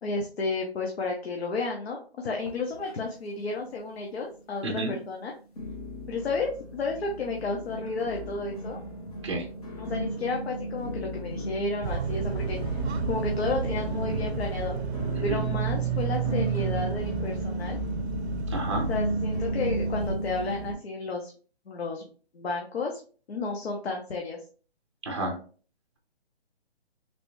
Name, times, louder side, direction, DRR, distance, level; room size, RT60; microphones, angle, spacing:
voice 1, 0.0-5.3 6.1-8.8 9.8-12.8 13.1-14.8 15.2-17.8 18.7-21.3 21.7-22.1 22.3-23.0 23.3-24.4, left 3 dB, 70° left, 1 dB, 0.8 m, -32 dB
sound 1, 2.4-3.3 3.6-4.2 4.7-4.8 5.6-20.7, right 1 dB, 35° left, 0.7 m, -35 dB
sound 2, 11.8-20.2, right 6 dB, 80° right, 0.5 m, -31 dB
voice 2, 18.5-18.9 25.0-25.3, right 2 dB, 30° right, 2 dB, 0.7 m, -30 dB
3.3 x 2.5 x 3.0 m, 0.39 s
hypercardioid pair, 170°, 32 cm